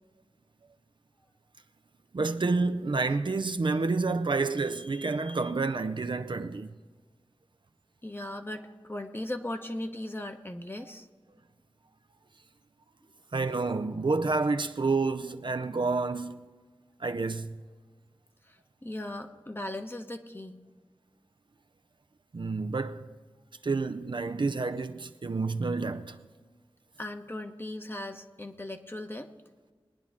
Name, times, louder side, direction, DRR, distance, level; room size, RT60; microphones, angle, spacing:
voice 1, 2.1-6.7 13.3-16.4 17.0-17.6 22.3-23.1 23.6-26.2, right 3 dB, 60° right, 0.6 m, -29 dB
voice 2, 8.0-11.1 18.5-20.6 27.0-29.3, left 1 dB, 25° left, 1.1 m, -38 dB
21.5 x 10.0 x 3.6 m
wide cardioid pair, 55°, 9 cm